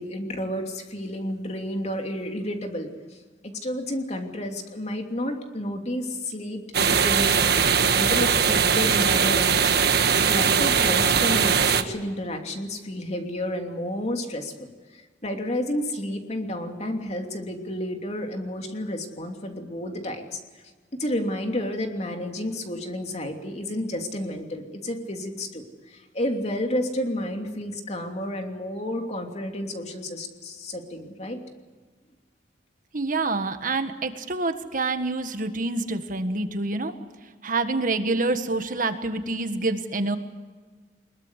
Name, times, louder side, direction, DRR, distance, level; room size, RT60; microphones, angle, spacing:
voice 1, 0.0-20.4 21.0-31.4, left 1 dB, 40° left, 3 dB, 3.0 m, -31 dB
sound 1, 6.7-11.8, right 6 dB, 65° right, 1.4 m, -20 dB
voice 2, 32.9-36.9 37.4-40.2, right 3 dB, 50° right, 8 dB, 1.6 m, -27 dB
23.0 x 21.5 x 8.2 m, 1.4 s
head